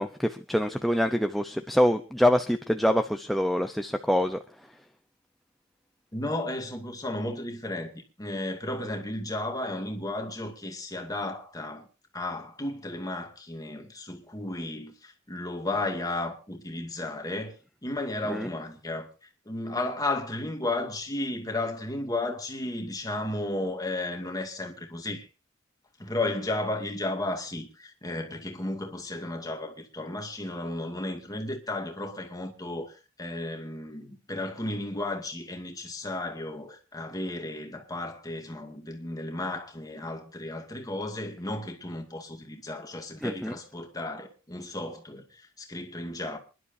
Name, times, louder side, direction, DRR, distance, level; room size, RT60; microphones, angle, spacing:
voice 1, 0.0-4.4 18.3-18.5 43.2-43.5, equal, ahead, 0.7 m, -25 dB
voice 2, 6.1-11.8 12.1-25.3 26.0-46.4, left 2 dB, 20° left, 2.3 m, -34 dB
27.0 x 11.5 x 2.7 m
head